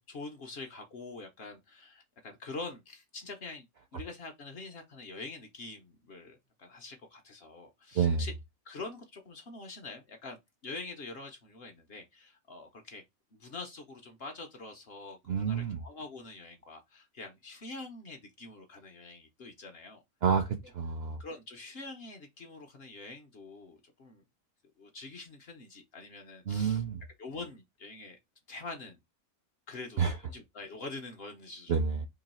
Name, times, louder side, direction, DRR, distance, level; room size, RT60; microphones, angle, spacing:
voice 1, 0.0-3.7 3.9-8.3 8.6-13.0 13.3-20.0 21.2-24.2 24.8-26.8 27.2-28.2 28.5-29.0 29.7-31.8, left 3 dB, 55° left, 0.7 m, -45 dB
voice 2, 15.3-15.8 20.2-21.2 26.5-27.0 30.0-30.2 31.7-32.1, right 6 dB, 65° right, 0.6 m, -29 dB
3.0 x 2.6 x 4.0 m
omnidirectional pair, 1.5 m